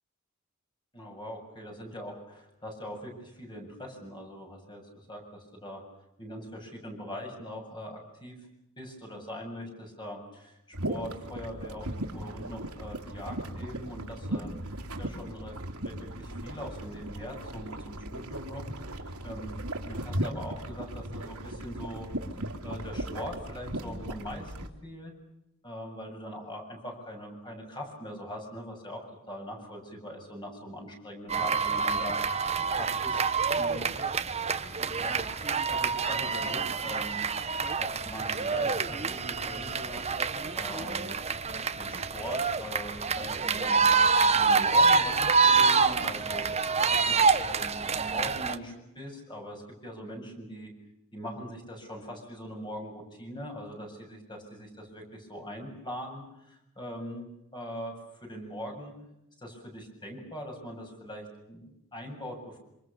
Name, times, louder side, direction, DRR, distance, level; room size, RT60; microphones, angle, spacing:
voice 1, 0.9-5.8 6.2-8.3 8.8-18.6 18.9-19.6 19.9-22.1 22.6-24.5 24.8-25.1 25.6-32.2 32.7-33.2 33.5-33.8 34.9-37.2 37.8-40.0 40.5-41.2 41.8-43.9 44.3-46.5 46.8-50.7 51.1-57.3 57.5-57.9 58.2-58.9 59.4-62.6, equal, 20° left, 2 dB, 7.7 m, -42 dB
sound 1, 10.7-24.7, right 1 dB, 80° right, 3.1 m, -37 dB
sound 2, 31.3-48.6, right 5 dB, 30° right, 1.3 m, -27 dB
27.0 x 26.5 x 7.1 m, 0.85 s
head